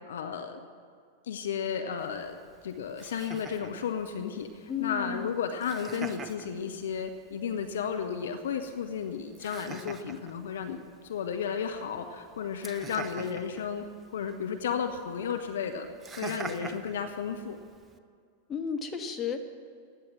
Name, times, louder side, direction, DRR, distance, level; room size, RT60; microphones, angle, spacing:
voice 1, 0.1-0.6 1.2-10.8 11.0-13.8 14.1-15.9 16.2-17.6, left 7 dB, 60° left, 8 dB, 0.9 m, -33 dB
Laughter, 2.0-18.0, right 5 dB, 20° right, 0.8 m, -47 dB
voice 2, 4.7-5.3 18.5-19.4, left 7 dB, 20° left, 4 dB, 1.4 m, -33 dB
16.5 x 10.5 x 7.5 m, 2.2 s
figure-of-eight pair, 90°, 0 cm